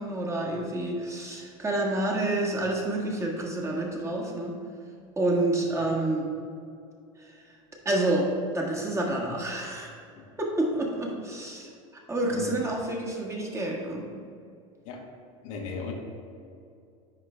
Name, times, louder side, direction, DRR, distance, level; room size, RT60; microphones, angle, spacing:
voice 1, 0.0-4.6 5.2-6.3 7.2-7.3 7.8-9.9 10.4-14.1, right 1 dB, 15° right, -2 dB, 1.5 m, -29 dB
voice 2, 15.4-15.9, left 5 dB, 70° left, 0 dB, 1.3 m, -37 dB
10.5 x 4.4 x 3.3 m, 2.4 s
hypercardioid pair, 95°, 18 cm